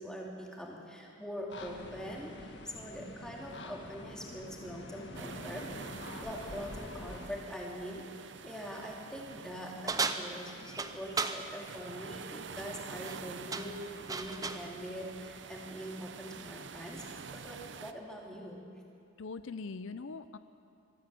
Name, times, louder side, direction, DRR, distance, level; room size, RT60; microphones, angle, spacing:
voice 1, 0.0-5.7 6.2-17.0 17.3-18.7, equal, 5° left, -2 dB, 2.7 m, -43 dB
sound 1, 1.5-7.3, left 1 dB, 60° left, 1.7 m, -46 dB
sound 2, 5.1-17.9, right 5 dB, 65° right, 0.7 m, -47 dB
sound 3, 9.9-11.4 12.9-13.2 13.5-14.7, right 4 dB, 20° right, 0.7 m, -35 dB
voice 2, 19.2-20.4, left 4 dB, 80° left, 12 dB, 0.6 m, -42 dB
23.0 x 14.5 x 7.7 m, 2.6 s
head